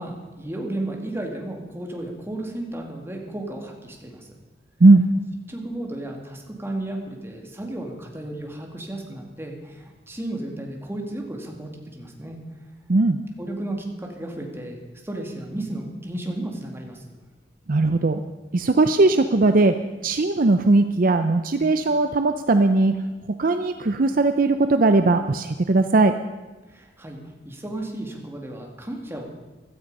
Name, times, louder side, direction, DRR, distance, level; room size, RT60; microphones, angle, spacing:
voice 1, 0.0-4.3 5.5-12.4 13.4-17.2 26.7-29.3, right 1 dB, 15° right, 1 dB, 2.2 m, -33 dB
voice 2, 17.7-18.2 18.5-19.7 20.0-22.9 23.3-26.1, right 2 dB, 50° right, 8 dB, 0.6 m, -18 dB
16.0 x 12.5 x 5.4 m, 1.2 s
head